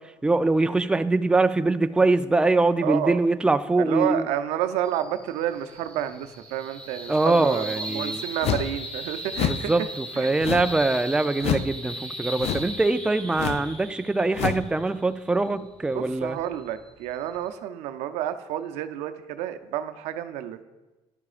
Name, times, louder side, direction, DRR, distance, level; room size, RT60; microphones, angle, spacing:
voice 1, 0.2-4.3 7.1-8.2 9.5-16.4, right 2 dB, 10° right, 10 dB, 0.4 m, -23 dB
voice 2, 2.8-3.2 3.8-9.7 10.2-10.3 15.9-20.6, right 11 dB, 85° right, 10 dB, 0.6 m, -30 dB
sound 1, 4.8-17.5, right 1 dB, 10° left, 2.1 m, -38 dB
sound 2, 8.4-8.8 9.3-9.7 10.4-10.8 11.4-11.7 12.4-12.8 13.3-13.7 14.3-14.7, left 10 dB, 70° left, 0.5 m, -28 dB
13.5 x 11.0 x 2.5 m, 1.1 s
supercardioid pair, 85°, 11 cm